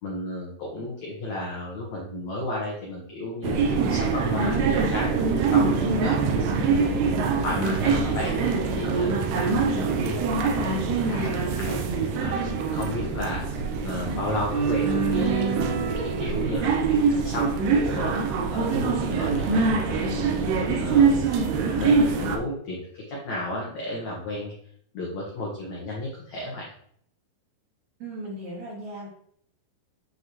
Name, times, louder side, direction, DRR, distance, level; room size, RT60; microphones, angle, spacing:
voice 1, 0.0-6.4 6.6-8.3 8.7-11.8 12.2-13.4 13.8-19.6 20.1-21.2 21.7-24.5 24.9-26.7, left 1 dB, 70° left, -3 dB, 1.7 m, -33 dB
sound 1, 3.4-22.4, right 5 dB, 75° right, 2.6 m, -24 dB
voice 2, 28.0-29.1, right 1 dB, 45° right, -7 dB, 3.6 m, -37 dB
8.2 x 5.5 x 3.1 m, 0.66 s
omnidirectional pair, 5.2 m